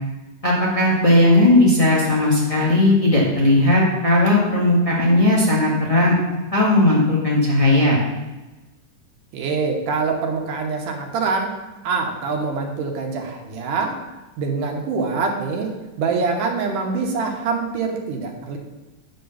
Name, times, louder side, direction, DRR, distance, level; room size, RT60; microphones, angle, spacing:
voice 1, 0.4-6.1 6.5-8.0, left 1 dB, 45° left, -5 dB, 0.4 m, -16 dB
voice 2, 9.3-11.5 11.8-14.0 14.4-15.7 16.0-18.6, right 4 dB, 75° right, 2 dB, 2.6 m, -24 dB
9.8 x 4.0 x 6.9 m, 1.1 s
omnidirectional pair, 3.8 m